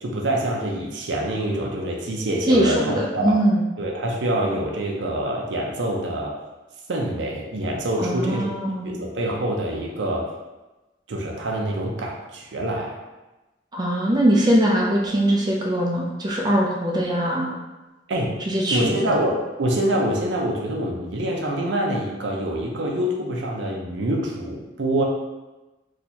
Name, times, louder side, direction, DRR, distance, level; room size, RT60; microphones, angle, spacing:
voice 1, 0.0-3.3 3.8-6.3 6.9-8.5 8.8-10.3 11.1-13.0 18.1-18.4 18.7-25.0, right 1 dB, 75° right, -1 dB, 0.5 m, -25 dB
voice 2, 2.5-3.6 8.0-8.9 13.7-17.5 18.5-19.1, right 1 dB, 25° right, -2 dB, 0.6 m, -21 dB
2.8 x 2.4 x 4.2 m, 1.1 s
head